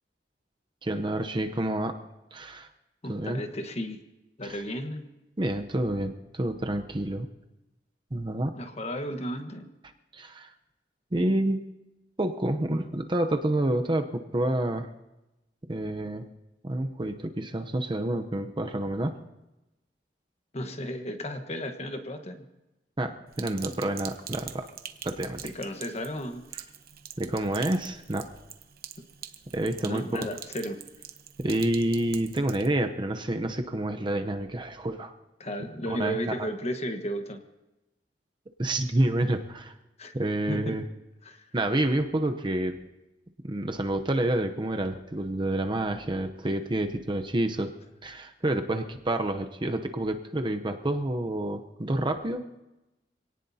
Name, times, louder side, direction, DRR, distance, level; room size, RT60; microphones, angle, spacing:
voice 1, 0.8-2.0 2.3-2.7 3.1-3.4 4.4-4.6 5.4-7.3 8.1-8.6 10.1-10.5 11.1-11.7 12.2-14.9 15.7-16.3 16.6-19.1 23.0-24.7 25.0-25.5 27.2-28.3 29.5-30.3 31.4-35.1 35.9-36.5 38.6-39.7 40.1-40.8 41.5-42.8 43.4-47.7 48.0-52.4, right 1 dB, 25° right, 6 dB, 0.8 m, -28 dB
voice 2, 3.0-4.0 4.4-5.1 8.6-9.7 20.5-22.4 25.4-26.4 29.8-30.8 35.4-37.4 40.0-40.1 40.5-40.8 41.2-41.4, equal, 40° left, 6 dB, 1.3 m, -34 dB
Sink (filling or washing), 23.3-32.7, right 10 dB, 60° right, 0.9 m, -44 dB
26.0 x 18.0 x 2.8 m, 0.97 s
head